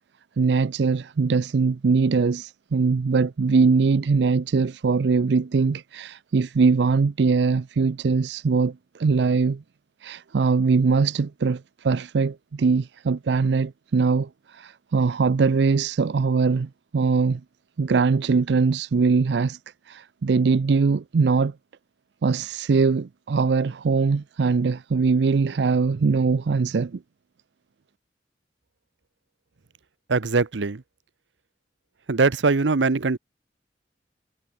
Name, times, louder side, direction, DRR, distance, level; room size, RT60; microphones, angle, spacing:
voice 1, 0.4-9.6 10.0-17.4 17.8-19.6 19.9-21.5 22.2-27.0, right 4 dB, 70° right, 0.4 m, -22 dB
voice 2, 30.1-30.8 32.1-33.2, right 4 dB, 90° right, 0.8 m, -21 dB
head